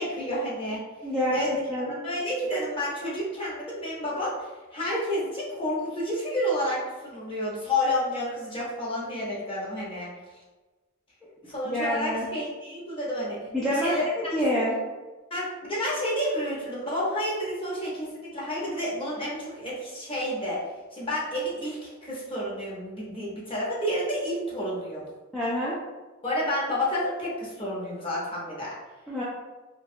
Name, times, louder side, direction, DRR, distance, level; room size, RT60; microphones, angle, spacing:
voice 1, 0.0-0.8 1.3-1.6 1.9-10.1 11.5-14.0 14.5-14.6 15.3-25.1 26.2-28.8, left 1 dB, 25° left, -6 dB, 0.7 m, -30 dB
voice 2, 1.0-2.0 11.6-12.3 13.5-14.8 25.3-25.8 29.1-29.2, equal, 5° left, -9 dB, 0.3 m, -27 dB
2.4 x 2.2 x 2.6 m, 1.2 s
head